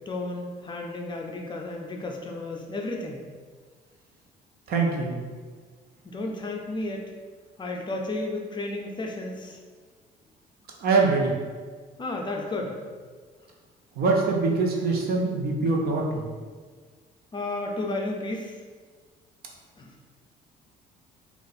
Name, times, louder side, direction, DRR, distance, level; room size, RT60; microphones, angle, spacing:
voice 1, 0.1-3.2 6.0-7.1 7.6-9.6 12.0-12.8 17.3-18.5 19.8-19.9, left 2 dB, 25° left, 1 dB, 0.5 m, -32 dB
voice 2, 4.7-5.2 10.8-11.3 14.0-16.3, right 3 dB, 65° right, 0 dB, 0.8 m, -23 dB
3.7 x 2.5 x 4.0 m, 1.5 s
cardioid pair, 110°, 17 cm